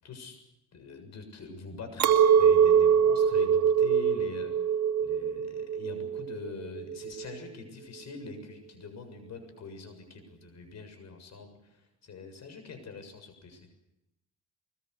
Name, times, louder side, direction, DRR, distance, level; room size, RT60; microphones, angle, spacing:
voice 1, 0.0-0.4 0.7-4.5 5.0-13.7, left 4 dB, 60° left, 7 dB, 7.2 m, -44 dB
Chink clink, 2.0-7.4, right 8 dB, 65° right, 2.4 m, -24 dB
23.5 x 21.5 x 8.2 m, 0.87 s
cardioid pair, 90°, 30 cm